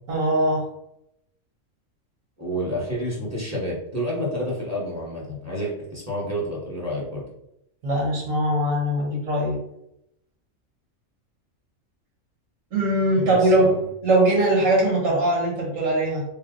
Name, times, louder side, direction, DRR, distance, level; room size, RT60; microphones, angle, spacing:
voice 1, 0.1-0.6 7.8-9.6 12.7-13.7 14.0-16.2, right 1 dB, 85° right, -3 dB, 1.5 m, -21 dB
voice 2, 2.4-7.2 13.2-13.8, equal, 15° right, -5 dB, 1.2 m, -29 dB
3.4 x 2.6 x 3.8 m, 0.80 s
omnidirectional pair, 1.4 m